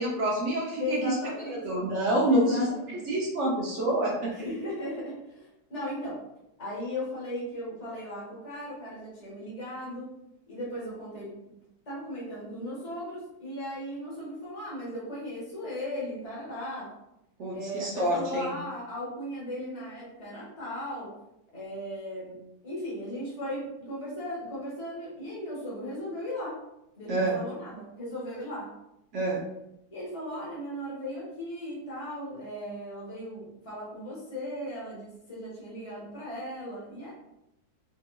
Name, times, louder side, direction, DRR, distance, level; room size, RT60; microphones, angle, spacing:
voice 1, 0.0-1.1 1.5-2.6 3.1-4.5 17.4-18.5 27.1-27.4 29.1-29.4, right 1 dB, 75° right, -3 dB, 0.6 m, -27 dB
voice 2, 0.8-1.6 2.3-3.0 4.3-6.2 6.6-10.1 10.5-11.6 11.8-16.9 17.5-21.1 21.5-26.6 27.0-28.7 29.9-37.1, left 1 dB, 25° left, -7 dB, 1.2 m, -37 dB
3.9 x 2.7 x 2.3 m, 0.86 s
omnidirectional pair, 1.9 m